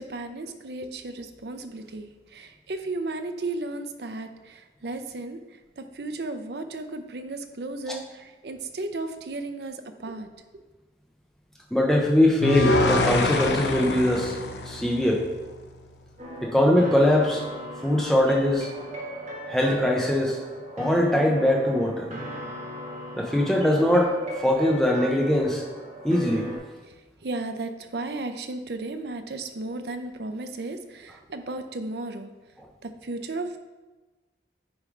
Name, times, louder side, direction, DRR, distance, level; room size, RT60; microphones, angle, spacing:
voice 1, 0.0-5.4 5.8-10.3 10.5-10.6 26.9-27.0 27.2-32.3 32.8-33.6, right 2 dB, 70° right, 8 dB, 0.6 m, -34 dB
voice 2, 11.7-14.4 14.7-15.3 16.4-17.4 17.8-18.7 19.5-20.4 20.8-22.1 23.2-24.1 24.4-25.6 26.0-26.5, left 1 dB, ahead, 0 dB, 0.7 m, -21 dB
sound 1, 12.4-15.6, left 2 dB, 75° left, 0.7 m, -25 dB
sound 2, 16.2-26.6, right 1 dB, 40° right, 1.4 m, -38 dB
9.6 x 3.2 x 4.9 m, 1.2 s
head